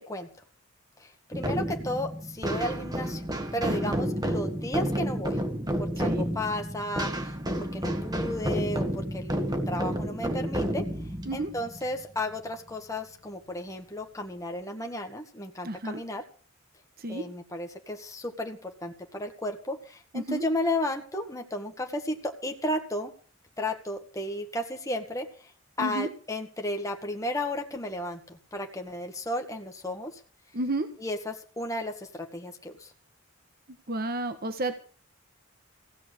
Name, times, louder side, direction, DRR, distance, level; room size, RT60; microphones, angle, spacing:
voice 1, 1.0-3.2 3.5-5.4 5.8-7.3 7.7-10.8 11.3-16.2 17.1-23.1 23.6-25.3 25.8-30.1 31.0-32.9, left 1 dB, 15° left, 3 dB, 1.6 m, -33 dB
sound 1, 1.3-12.7, equal, 20° right, 1.7 m, -31 dB
voice 2, 3.7-4.0 6.0-6.2 11.2-11.5 15.6-16.0 17.0-17.2 20.1-20.4 25.8-26.1 30.5-30.9 33.9-34.8, right 2 dB, 45° right, 8 dB, 1.3 m, -31 dB
16.5 x 7.2 x 8.3 m, 0.42 s
head